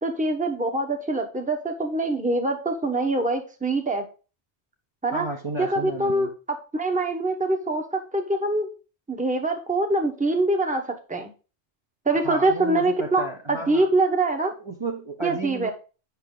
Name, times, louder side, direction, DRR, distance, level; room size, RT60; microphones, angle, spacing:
voice 1, 0.0-4.1 5.0-5.3 5.6-6.3 6.7-8.7 9.1-10.8 11.1-11.3 12.0-14.5 15.2-15.7, right 2 dB, 5° right, 4 dB, 1.1 m, -24 dB
voice 2, 5.1-6.3 12.2-13.9 14.6-15.7, right 2 dB, 25° right, 0 dB, 1.0 m, -33 dB
8.5 x 5.9 x 3.9 m, 0.34 s
omnidirectional pair, 1.2 m